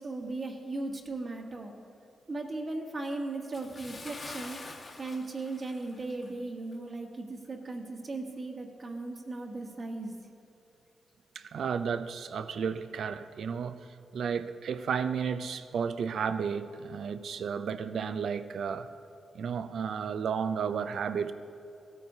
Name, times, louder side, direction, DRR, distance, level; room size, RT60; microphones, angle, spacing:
voice 1, 0.0-1.7 2.3-4.6 5.0-10.1, right 2 dB, 50° right, 1 dB, 1.3 m, -37 dB
Bathtub (filling or washing) / Splash splatter, 3.5-6.4 6.7-6.9 7.5-7.6, left 3 dB, 55° left, 1.3 m, -46 dB
voice 2, 11.4-13.9 14.1-18.9 19.3-21.3, right 6 dB, 75° right, 12 dB, 0.4 m, -33 dB
16.0 x 9.1 x 2.8 m, 2.6 s
supercardioid pair, 50°, 0 cm